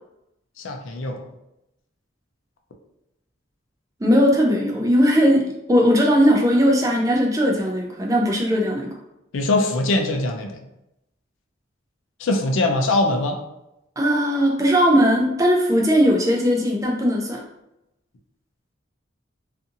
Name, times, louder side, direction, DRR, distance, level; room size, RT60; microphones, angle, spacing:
voice 1, 0.6-1.2 9.3-10.6 12.2-13.4, left 2 dB, 85° left, 3 dB, 0.4 m, -22 dB
voice 2, 4.0-8.9 14.0-17.4, equal, 15° right, -1 dB, 0.4 m, -18 dB
2.7 x 2.5 x 2.5 m, 0.87 s
head